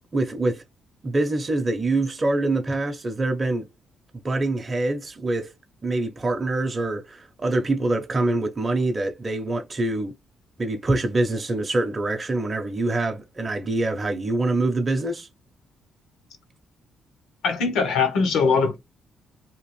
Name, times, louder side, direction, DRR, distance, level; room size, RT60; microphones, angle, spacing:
voice 1, 0.1-0.6 1.0-3.7 4.2-5.5 5.8-10.1 10.6-15.3, right 2 dB, 25° right, 0.6 m, -25 dB
voice 2, 17.4-18.8, left 5 dB, 85° left, 0.8 m, -21 dB
2.9 x 2.5 x 3.0 m
cardioid pair, 90°, 0 cm